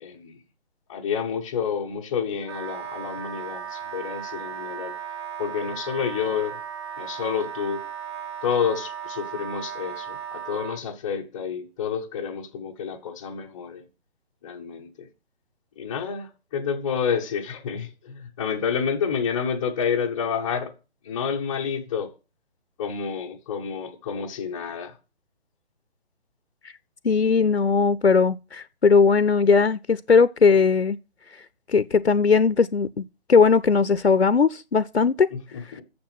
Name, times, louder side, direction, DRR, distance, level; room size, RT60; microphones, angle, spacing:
voice 1, 0.0-0.4 0.9-4.9 5.4-6.5 7.0-7.8 8.4-13.8 14.4-15.1 15.8-20.7 21.0-22.1 22.8-25.0 35.3-35.8, left 7 dB, 5° left, 0.5 m, -29 dB
Wind instrument woodwind instrument, 2.4-10.8, right 8 dB, 25° right, 1.6 m, -36 dB
voice 2, 27.0-31.0 31.7-35.3, left 5 dB, 80° left, 0.7 m, -19 dB
9.5 x 7.2 x 8.9 m
figure-of-eight pair, 140°, 32 cm